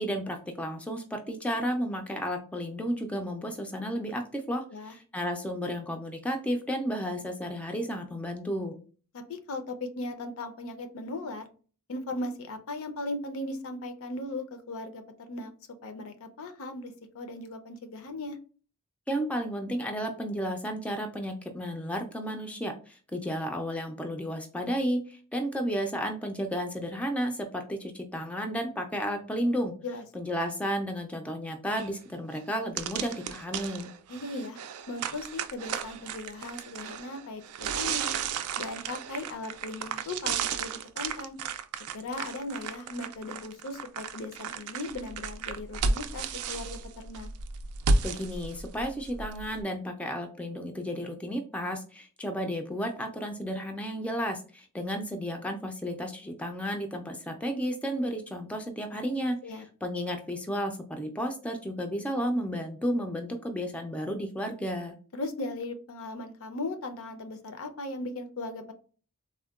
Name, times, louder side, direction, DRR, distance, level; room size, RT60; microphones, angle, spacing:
voice 1, 0.0-8.8 19.1-29.7 30.1-33.9 48.0-65.0, equal, 5° left, 4 dB, 0.3 m, -32 dB
voice 2, 9.1-11.4 11.9-15.5 15.8-18.4 29.8-30.0 34.1-34.6 34.9-37.4 37.7-38.2 38.6-41.3 41.9-47.3 59.4-59.6 65.1-68.7, left 2 dB, 65° left, 7 dB, 0.5 m, -38 dB
sound 1, 31.8-31.9 32.3-32.4 32.8-49.6, right 4 dB, 80° right, 0.3 m, -33 dB
3.6 x 2.1 x 2.3 m, 0.39 s
head